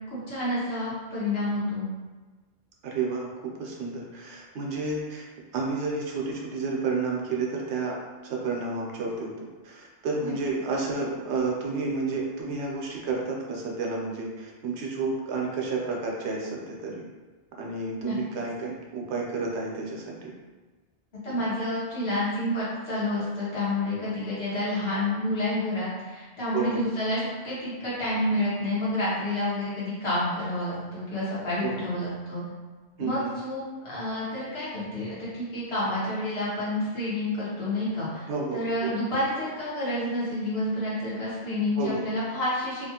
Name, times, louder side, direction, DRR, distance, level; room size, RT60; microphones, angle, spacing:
voice 1, 0.0-1.9 10.2-10.3 18.0-18.1 21.2-32.4 33.0-38.3 38.5-42.9, left 1 dB, 65° left, -9 dB, 1.3 m, -29 dB
voice 2, 2.8-3.3 3.6-5.2 5.5-7.9 8.2-17.0 17.6-20.3 21.3-21.4 26.5-26.8 31.6-31.9 33.0-33.3 38.3-38.9 41.8-42.1, right 3 dB, 80° right, -2 dB, 0.9 m, -31 dB
2.9 x 2.4 x 2.7 m, 1.3 s
omnidirectional pair, 1.2 m